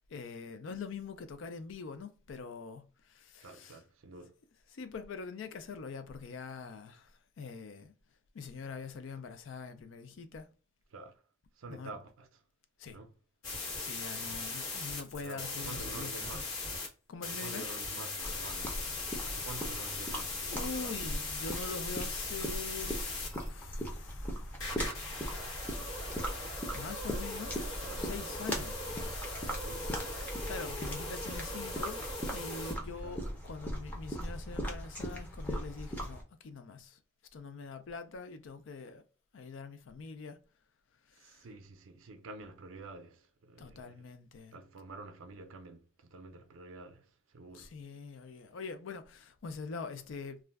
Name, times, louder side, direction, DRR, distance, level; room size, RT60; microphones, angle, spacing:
voice 1, 0.1-3.8 4.7-7.9 8.3-10.5 11.7-11.9 12.8-13.0 13.8-16.3 17.1-17.7 20.4-23.1 23.4-24.9 26.7-29.2 30.4-32.0 32.3-37.0 37.3-39.0 39.3-40.4 41.1-41.5 43.6-44.6 47.5-50.4, left 4 dB, 65° left, 0.4 m, -44 dB
voice 2, 3.4-4.4 10.9-11.1 11.6-12.4 12.9-13.1 14.3-14.5 15.2-16.6 17.2-21.0 27.5-28.1 29.6-30.8 33.0-33.3 41.2-44.0 44.5-47.8, right 2 dB, 75° right, 0.5 m, -49 dB
sound 1, 13.4-16.9 17.2-23.5 24.6-32.7, left 3 dB, 85° left, 1.0 m, -39 dB
sound 2, 18.2-36.2, equal, 10° left, 0.5 m, -39 dB
2.4 x 2.2 x 3.3 m
head